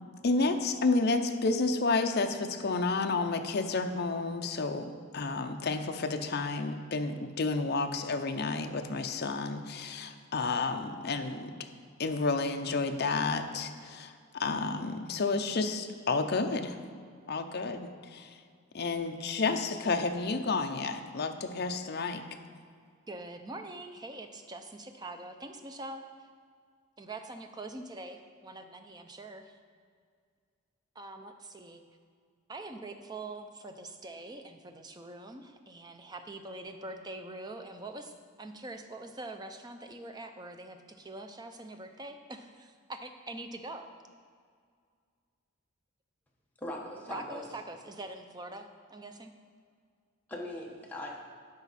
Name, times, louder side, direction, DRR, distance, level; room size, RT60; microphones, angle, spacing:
voice 1, 0.2-11.5 12.0-16.8 17.3-18.3 18.7-22.2, left 3 dB, 45° left, 6 dB, 0.5 m, -31 dB
voice 2, 23.1-26.1 27.0-29.6 31.0-31.8 32.5-43.9 47.1-49.3, right 2 dB, 20° right, 6 dB, 0.4 m, -44 dB
voice 3, 46.6-47.5 50.3-51.3, left 1 dB, 5° left, -2 dB, 1.0 m, -40 dB
11.5 x 5.0 x 4.1 m, 2.1 s
head